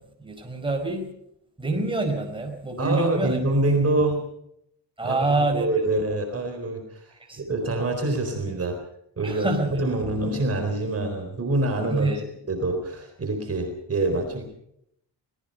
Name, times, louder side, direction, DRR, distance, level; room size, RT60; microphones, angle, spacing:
voice 1, 0.2-1.1 1.6-3.8 5.0-5.7 7.3-7.4 9.2-9.8 11.9-12.2, right 2 dB, 10° right, 2 dB, 4.9 m, -26 dB
voice 2, 2.8-4.2 5.0-7.1 7.4-8.8 9.2-12.1 12.5-14.4, right 2 dB, 35° right, 4 dB, 4.1 m, -25 dB
24.5 x 19.5 x 5.5 m, 0.75 s
cardioid pair, 140°, 42 cm